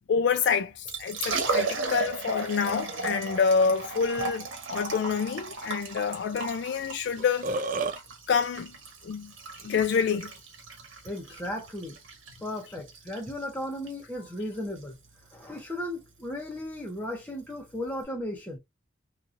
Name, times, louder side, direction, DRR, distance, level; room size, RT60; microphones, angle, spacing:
voice 1, 0.1-7.5 8.3-8.7 9.0-9.3 9.6-10.3, left 6 dB, 60° left, 0.3 m, -27 dB
Liquid, 0.7-18.0, right 3 dB, 85° right, 1.1 m, -36 dB
Burping eructation, 7.2-8.0, right 3 dB, 40° right, 0.3 m, -29 dB
voice 2, 11.0-12.0 12.4-15.0 15.3-18.6, left 1 dB, 10° left, 1.0 m, -35 dB
3.0 x 2.3 x 2.5 m
head